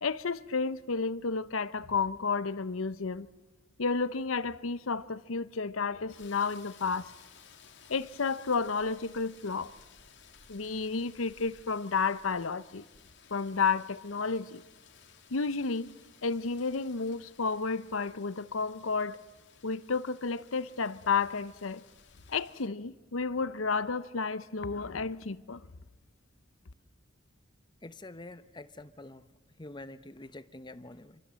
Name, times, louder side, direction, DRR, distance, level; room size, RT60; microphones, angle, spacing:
voice 1, 0.0-3.3 3.8-7.1 7.9-9.7 10.5-12.8 13.3-14.6 15.3-15.9 16.2-19.2 19.6-21.8 22.3-25.7, left 4 dB, 85° left, 0.9 m, -31 dB
Rain, 6.1-22.7, left 7 dB, 60° left, 2.8 m, -58 dB
voice 2, 27.8-29.3 29.6-31.2, left 2 dB, 20° left, 0.9 m, -46 dB
27.0 x 24.5 x 7.6 m
head